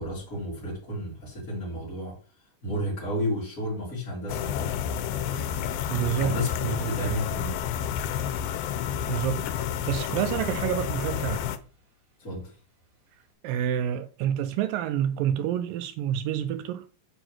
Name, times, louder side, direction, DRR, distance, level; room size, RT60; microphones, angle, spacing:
voice 1, 0.0-2.2 2.6-5.8 6.1-7.6 12.2-12.6, equal, 25° left, 2.5 m, -33 dB
sound 1, 4.3-11.6, left 9 dB, 90° left, 2.4 m, -30 dB
Thunder / Rain, 4.3-13.3, right 1 dB, 60° right, 4.0 m, -57 dB
voice 2, 5.9-7.2 9.1-9.5 9.9-11.4 13.4-16.8, right 10 dB, 80° right, 2.1 m, -28 dB
6.9 x 4.4 x 6.1 m
omnidirectional pair, 4.2 m